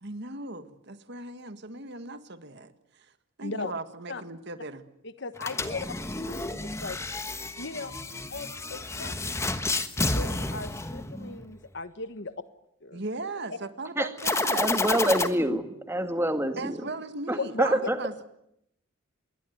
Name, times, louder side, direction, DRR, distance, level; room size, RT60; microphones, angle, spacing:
voice 1, 0.0-3.1 3.4-4.8 12.9-14.7 16.6-18.3, right 2 dB, 55° right, 10 dB, 1.8 m, -37 dB
voice 2, 3.4-3.7 4.1-4.2 5.0-5.9 6.2-7.0 7.6-7.9 8.3-9.1 10.1-12.3 12.8-13.0 13.5-13.6 14.8-15.0 15.5-15.6 17.4-17.7, left 3 dB, 55° left, 12 dB, 1.4 m, -37 dB
sound 1, 5.4-11.5 14.2-15.3, left 2 dB, 15° left, 1.3 m, -30 dB
voice 3, 14.5-16.8 17.3-18.0, right 1 dB, 10° right, 8 dB, 2.0 m, -26 dB
27.0 x 21.5 x 9.4 m, 0.78 s
head